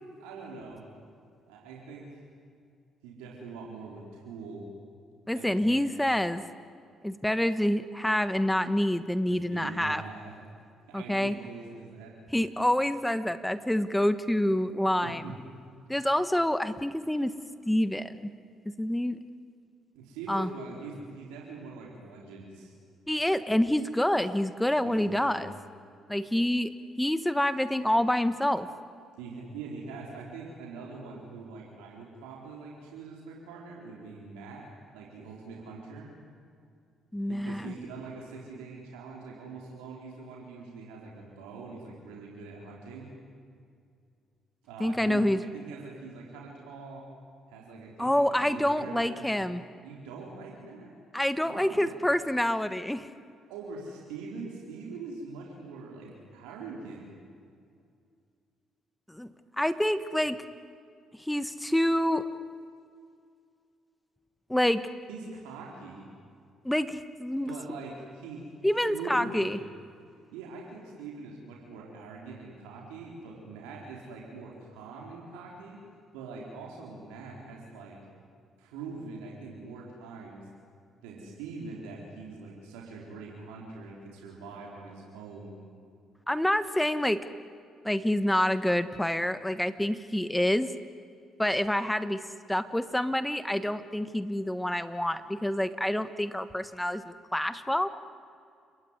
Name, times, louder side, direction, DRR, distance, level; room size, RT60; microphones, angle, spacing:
voice 1, 0.2-0.9 1.5-2.2 3.0-4.7 5.3-5.9 9.3-10.3 10.9-12.2 15.0-15.3 19.9-22.7 24.8-25.3 29.2-34.7 34.9-36.1 37.3-43.1 44.6-47.0 47.5-49.3 49.8-50.9 51.4-51.9 53.5-57.1 65.1-66.0 67.4-68.4 68.8-69.6 70.3-75.8 76.1-78.0 78.6-80.5 81.0-85.5, right 4 dB, 85° right, -2 dB, 4.2 m, -43 dB
voice 2, 5.3-6.4 7.0-10.0 10.9-11.3 12.3-15.3 15.9-17.4 17.7-18.3 18.6-19.2 20.3-20.5 23.1-25.5 26.1-28.7 37.1-37.7 44.8-45.4 48.0-49.6 51.1-53.1 59.1-60.4 61.1-62.2 64.5-64.8 66.6-67.5 68.6-69.6 86.3-87.3 87.8-90.7 91.4-92.2 92.5-97.9, left 1 dB, 5° left, 12 dB, 1.4 m, -27 dB
30.0 x 18.5 x 9.9 m, 2.3 s
hypercardioid pair, 55°, 0 cm